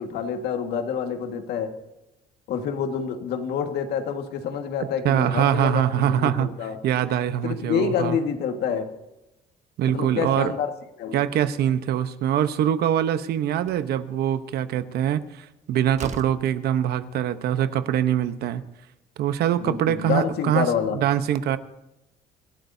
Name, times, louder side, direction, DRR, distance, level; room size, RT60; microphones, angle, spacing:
voice 1, 0.0-1.7 2.5-6.8 7.4-8.9 9.9-10.7 11.0-11.2 19.6-21.0, left 7 dB, 75° left, 6 dB, 1.7 m, -27 dB
voice 2, 5.0-8.2 9.8-10.5 11.1-18.6 19.2-21.6, right 10 dB, 70° right, 11 dB, 0.9 m, -23 dB
Slam, 13.6-13.9 15.4-15.5 15.9-16.5, right 6 dB, 45° right, 1.1 m, -37 dB
26.5 x 13.0 x 2.7 m, 0.91 s
cardioid pair, 110°, 17 cm